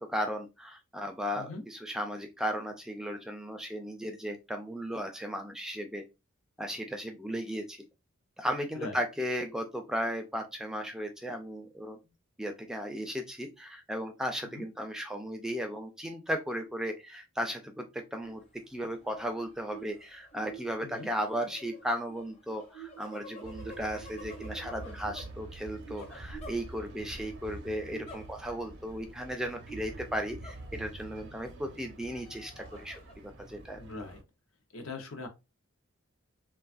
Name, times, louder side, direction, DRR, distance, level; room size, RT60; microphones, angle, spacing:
voice 1, 0.1-6.0 6.6-7.8 8.4-12.0 12.4-33.8, equal, 5° right, 0.3 m, -36 dB
sound 1, 18.2-18.5 18.9-27.2 27.9-28.6 29.0-29.1 29.7-31.1 31.7-33.1, right 3 dB, 30° left, 0.6 m, -49 dB
sound 2, 23.4-34.2, right 2 dB, 55° right, 0.5 m, -47 dB
voice 2, 33.8-34.2 34.7-35.3, left 3 dB, 70° left, 0.7 m, -41 dB
3.2 x 2.3 x 2.4 m
head